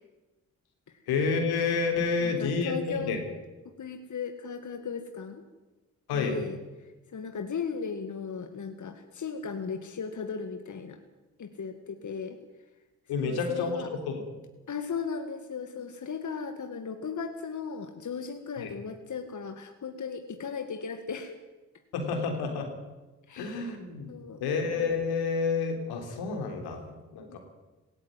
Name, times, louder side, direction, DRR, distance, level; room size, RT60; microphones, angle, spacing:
voice 1, 1.1-3.2 6.1-6.4 13.1-14.2 18.6-18.7 21.9-22.7 23.4-24.1 24.4-27.4, left 4 dB, 80° left, 4 dB, 3.6 m, -29 dB
voice 2, 2.1-3.2 3.8-5.4 6.1-11.0 11.4-12.4 13.2-13.9 14.7-21.4 23.3-23.7 24.1-24.4 27.3-27.4, left 6 dB, 50° left, 7 dB, 2.1 m, -37 dB
18.0 x 15.5 x 9.6 m, 1.1 s
hypercardioid pair, 45°, 37 cm